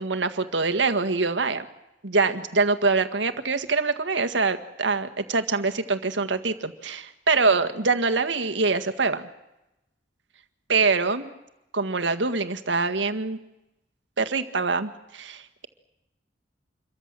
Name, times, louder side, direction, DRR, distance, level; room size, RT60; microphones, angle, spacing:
voice 1, 0.0-1.6 2.0-9.3 10.7-11.3 11.7-13.4 14.2-15.7, right 4 dB, 90° right, 8 dB, 1.8 m, -24 dB
27.5 x 23.0 x 7.6 m, 0.91 s
head